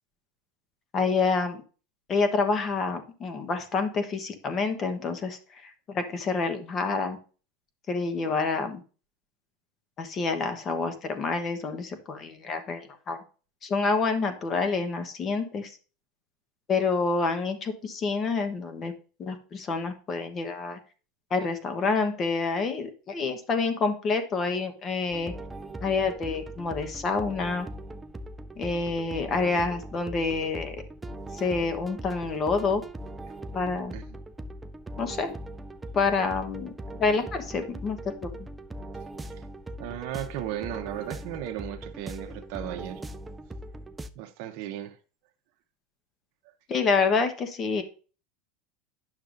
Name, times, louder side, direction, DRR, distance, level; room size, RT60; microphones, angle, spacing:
voice 1, 0.9-1.6 2.1-7.2 7.9-8.8 10.0-13.2 13.6-15.8 16.7-18.9 19.2-20.8 21.3-25.3 25.8-27.7 28.6-30.8 31.3-32.8 33.5-33.9 35.0-35.3 35.9-36.7 37.0-38.5 46.7-47.8, left 4 dB, 25° left, 1.0 m, -28 dB
sound 1, 25.1-44.1, right 1 dB, 10° right, 0.4 m, -40 dB
voice 2, 39.8-43.0 44.2-45.0, right 11 dB, 55° right, 0.8 m, -36 dB
10.0 x 6.6 x 2.5 m
supercardioid pair, 145°, 0 cm